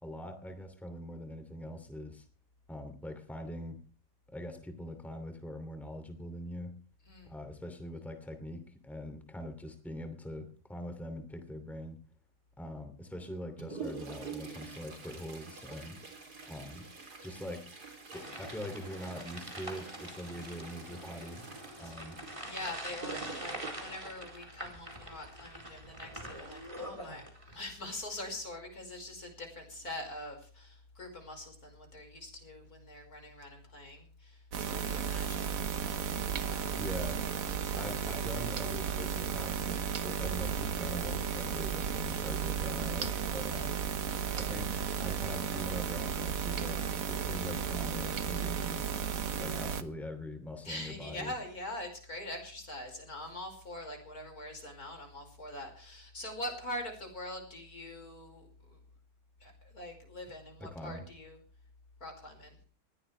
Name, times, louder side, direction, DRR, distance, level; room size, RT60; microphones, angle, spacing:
voice 1, 0.0-2.3 2.7-3.8 4.3-6.7 7.2-12.0 12.6-16.0 16.5-16.8 17.2-17.7 18.1-21.5 21.8-22.2 36.8-37.2 37.8-43.8 44.3-44.7 45.0-46.8 47.1-49.0 49.4-51.3 60.6-61.1, equal, ahead, 7 dB, 2.7 m, -43 dB
Toilet flush, 13.2-25.2 27.0-27.1 27.5-27.6 28.4-28.5 29.1-29.4 29.8-29.9, right 5 dB, 85° right, 4.0 m, -47 dB
sound 1, 18.1-27.7, right 1 dB, 20° right, 4.3 m, -45 dB
voice 2, 22.4-35.6 36.4-36.8 37.6-37.8 43.3-43.6 50.6-58.8 59.4-61.4 62.0-62.6, left 1 dB, 70° left, 4 dB, 5.8 m, -44 dB
sound 2, 34.5-49.8, right 7 dB, 60° right, 1.5 m, -34 dB
20.5 x 16.0 x 3.4 m, 0.40 s
omnidirectional pair, 1.7 m